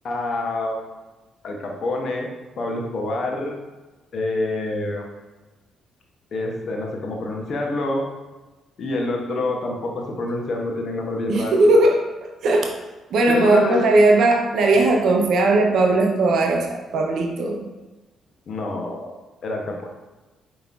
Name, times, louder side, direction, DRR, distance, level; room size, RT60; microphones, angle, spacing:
voice 1, 0.0-0.9 1.4-2.3 2.6-3.6 4.1-5.0 6.3-8.1 8.8-11.7 13.3-13.9 18.5-19.1 19.4-19.9, left 2 dB, 55° left, 1 dB, 0.7 m, -27 dB
voice 2, 11.3-12.0 12.4-12.8 13.1-17.7, right 2 dB, 60° right, 3 dB, 0.5 m, -18 dB
4.9 x 3.0 x 2.4 m, 1.1 s
hypercardioid pair, 45°, 0 cm